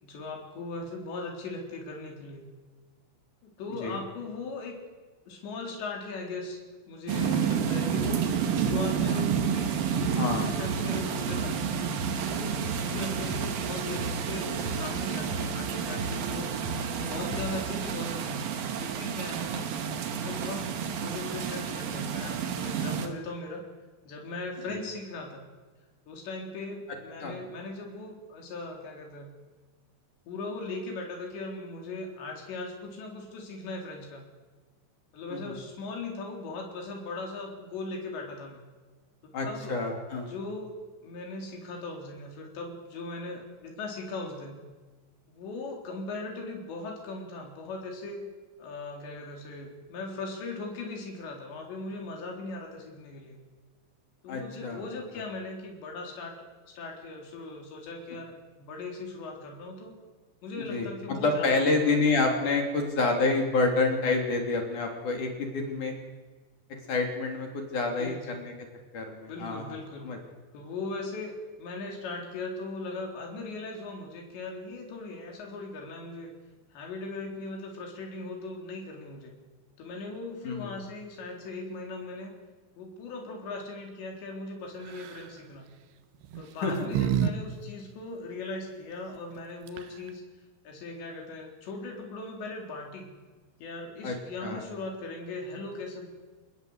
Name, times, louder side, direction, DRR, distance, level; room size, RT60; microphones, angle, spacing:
voice 1, 0.0-2.5 3.4-4.8 5.3-6.6 6.9-8.3 8.6-11.5 12.3-16.5 17.1-18.5 18.8-19.7 20.2-23.6 24.1-25.5 26.1-29.3 30.3-34.3 35.1-38.6 39.2-39.8 40.3-40.7 41.0-44.6 45.3-48.3 48.6-53.4 54.2-56.4 56.8-60.0 60.4-62.0 68.0-68.4 69.3-70.1 70.5-76.3 76.7-79.3 79.8-82.4 82.8-85.7 86.4-90.2 90.7-93.1 93.6-96.1, left 3 dB, 80° left, 1 dB, 6.1 m, -39 dB
sound 1, 7.1-23.1, right 7 dB, 60° right, 3.3 m, -30 dB
sound 2, 7.5-17.7, right 2 dB, 40° right, 5.1 m, -38 dB
voice 2, 10.2-10.5 12.9-13.1 24.7-24.8 27.2-27.3 35.3-35.6 39.3-40.3 54.3-54.8 55.1-55.2 58.1-58.2 60.7-65.9 66.9-68.5 68.9-69.8 70.0-70.2 80.4-80.8 86.6-86.9 94.0-94.1 94.4-94.6, left 3 dB, 50° left, 3 dB, 4.4 m, -28 dB
sound 3, 84.9-85.3 86.2-87.3 87.6-87.7 89.4-89.5 89.7-90.1, right 9 dB, 85° right, 3.7 m, -29 dB
27.5 x 20.0 x 8.1 m, 1.3 s
omnidirectional pair, 5.0 m